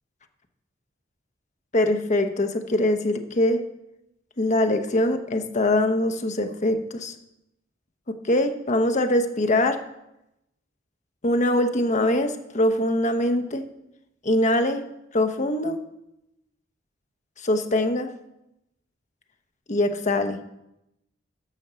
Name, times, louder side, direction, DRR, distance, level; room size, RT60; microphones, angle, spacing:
voice 1, 1.7-3.6 4.4-7.1 8.1-9.8 11.2-13.6 14.2-14.8 15.1-15.8 17.4-18.1 19.7-20.4, left 1 dB, 40° left, 7 dB, 1.0 m, -23 dB
9.3 x 6.2 x 7.0 m, 0.87 s
head